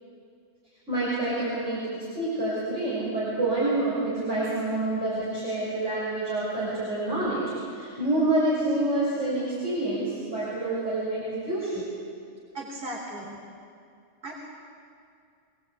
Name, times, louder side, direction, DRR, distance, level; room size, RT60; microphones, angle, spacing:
voice 1, 0.9-11.9, right 2 dB, 70° right, -9 dB, 6.9 m, -27 dB
voice 2, 12.5-13.4 14.2-14.3, right 1 dB, 40° right, -3 dB, 3.8 m, -36 dB
25.5 x 19.5 x 8.5 m, 2.4 s
omnidirectional pair, 1.3 m